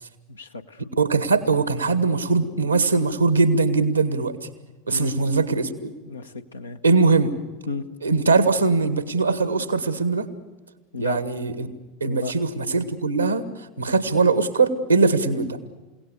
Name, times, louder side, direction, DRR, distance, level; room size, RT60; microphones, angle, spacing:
voice 1, 0.3-0.8 4.9-5.2 6.0-6.8 7.7-7.8 10.9-11.2 12.0-12.3, left 4 dB, 80° left, 6 dB, 1.2 m, -32 dB
voice 2, 0.8-4.4 4.9-5.9 6.8-7.3 8.0-10.3 11.0-11.7 12.0-13.4 13.8-15.6, right 4 dB, 85° right, 12 dB, 1.8 m, -21 dB
29.5 x 17.5 x 6.8 m, 1.2 s
figure-of-eight pair, 80°, 0 cm